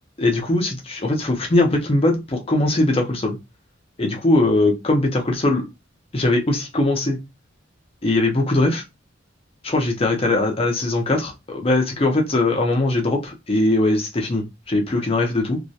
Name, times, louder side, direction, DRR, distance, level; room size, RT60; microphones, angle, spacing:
voice 1, 0.2-3.4 4.0-5.7 6.1-7.2 8.0-8.8 9.6-15.6, left 2 dB, 30° left, 0.6 m, -20 dB
2.3 x 2.1 x 2.7 m
head